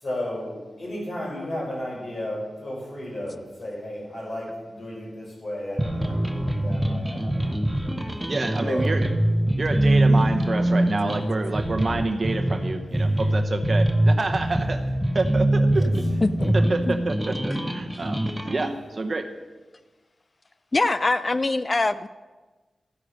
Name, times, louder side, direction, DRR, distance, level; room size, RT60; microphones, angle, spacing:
voice 1, 0.0-8.0 8.5-8.8 15.7-15.9 16.6-16.7, left 1 dB, 50° left, -3 dB, 6.1 m, -34 dB
sound 1, 5.8-18.7, right 1 dB, 5° right, 1.1 m, -23 dB
voice 2, 8.3-9.1 9.6-14.8 15.1-15.9 16.5-19.3, right 3 dB, 40° right, 6 dB, 1.0 m, -28 dB
voice 3, 16.2-16.5 16.8-17.0 20.7-22.1, left 2 dB, 30° left, 13 dB, 0.3 m, -23 dB
14.0 x 10.5 x 6.5 m, 1.3 s
wide cardioid pair, 140°, 0 cm